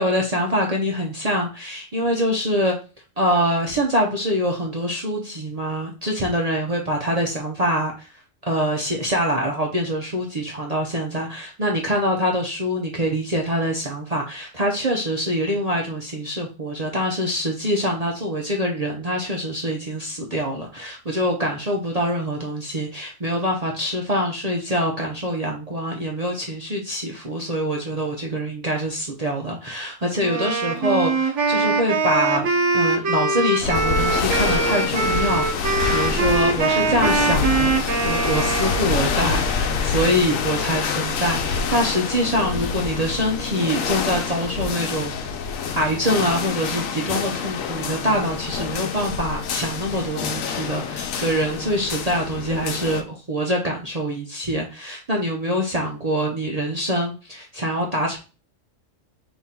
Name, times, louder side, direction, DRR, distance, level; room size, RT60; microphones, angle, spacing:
voice 1, 0.0-2.8 3.2-32.5 32.7-45.2 45.5-58.2, equal, 40° right, -1 dB, 0.6 m, -24 dB
Wind instrument woodwind instrument, 30.2-39.0, right 3 dB, 65° right, 1.1 m, -22 dB
sound 1, 33.6-53.0, left 6 dB, 85° left, 1.0 m, -26 dB
3.8 x 2.9 x 4.2 m, 0.33 s
omnidirectional pair, 1.4 m